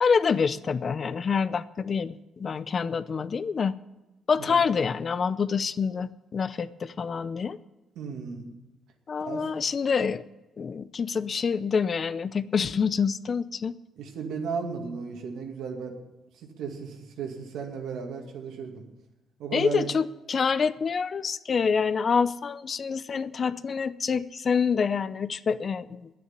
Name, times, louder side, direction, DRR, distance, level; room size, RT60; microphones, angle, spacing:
voice 1, 0.0-3.7 4.3-7.6 9.1-10.2 10.6-13.8 19.5-26.1, left 6 dB, 45° left, 15 dB, 0.5 m, -26 dB
voice 2, 8.0-8.5 9.2-9.5 14.0-15.9 16.3-18.8 19.4-19.9, right 5 dB, 85° right, 2 dB, 2.3 m, -35 dB
9.7 x 9.4 x 9.5 m, 1.0 s
cardioid pair, 90°, 0 cm